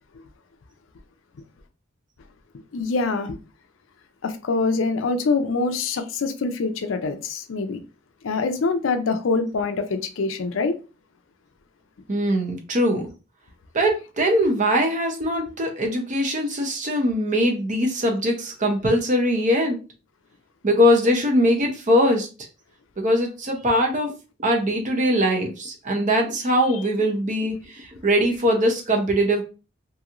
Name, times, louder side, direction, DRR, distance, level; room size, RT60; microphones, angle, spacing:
voice 1, 2.7-3.4 4.2-7.8 8.2-10.8 26.6-26.7, left 4 dB, 70° left, 0.5 m, -24 dB
voice 2, 12.1-13.1 13.7-19.8 20.6-22.3 23.0-24.1 24.4-29.4, equal, 40° right, 0.7 m, -21 dB
2.9 x 2.7 x 2.4 m
head